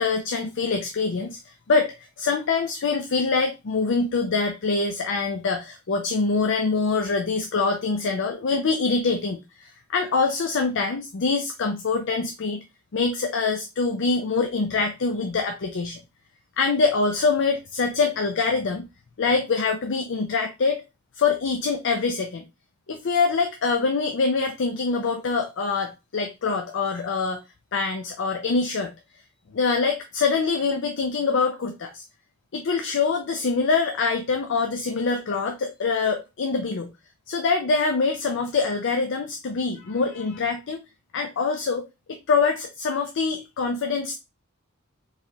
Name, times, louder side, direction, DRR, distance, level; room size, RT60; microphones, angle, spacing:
voice 1, 0.0-12.6 12.9-16.0 16.6-18.9 19.2-20.8 21.2-22.4 22.9-27.4 27.7-28.9 29.5-32.0 32.5-36.9 37.3-40.8 41.1-44.1, left 4 dB, 60° left, 5 dB, 0.5 m, -24 dB
4.6 x 3.1 x 2.8 m, 0.25 s
head